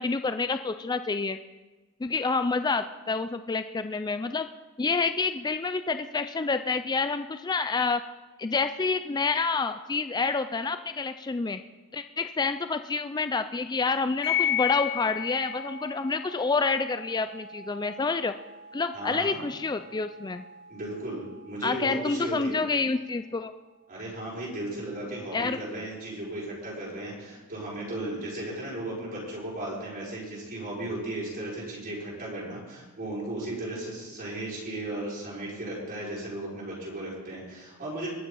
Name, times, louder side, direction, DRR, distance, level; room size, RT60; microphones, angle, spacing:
voice 1, 0.0-1.4 2.0-4.5 4.8-8.0 8.4-11.6 11.9-18.3 18.7-20.4 21.6-23.5 25.3-25.6, left 4 dB, 20° left, 10 dB, 0.3 m, -28 dB
sound 1, 14.2-23.2, left 9 dB, 55° left, 4.3 m, -36 dB
voice 2, 18.9-19.4 20.7-22.6 23.9-38.1, right 1 dB, 40° right, -6 dB, 5.7 m, -35 dB
22.0 x 7.6 x 5.4 m, 1.2 s
head